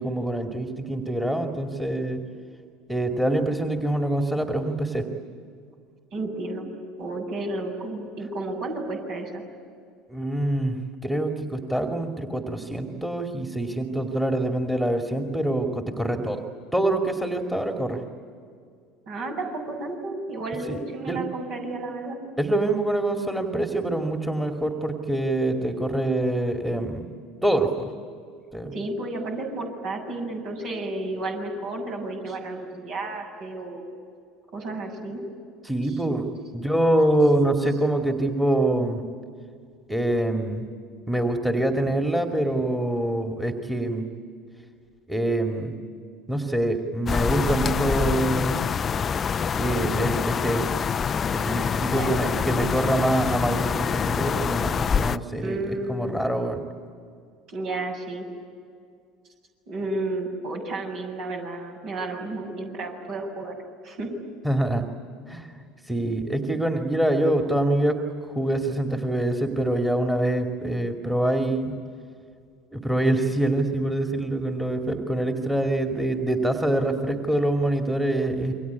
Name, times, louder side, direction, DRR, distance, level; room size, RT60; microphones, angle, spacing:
voice 1, 0.0-2.2 2.9-5.1 10.1-10.8 11.0-16.4 16.7-18.0 20.7-21.2 22.4-27.0 27.4-27.9 28.5-28.7 35.6-39.1 39.9-40.6 41.1-44.0 45.1-45.7 46.3-48.6 49.5-50.6 51.3-56.6 64.4-64.9 65.3-65.5 65.9-68.0 68.3-71.8 72.7-78.5, right 1 dB, 5° right, 4 dB, 2.6 m, -25 dB
voice 2, 6.1-6.7 7.0-9.4 19.1-22.2 28.7-33.9 34.5-35.2 51.9-52.6 55.4-56.3 57.5-58.3 59.7-63.6 63.8-64.1, right 2 dB, 55° right, 2 dB, 7.4 m, -32 dB
sound 1, 47.1-55.2, left 6 dB, 30° left, 0.6 m, -26 dB
28.5 x 24.0 x 8.5 m, 2.2 s
figure-of-eight pair, 70°, 0 cm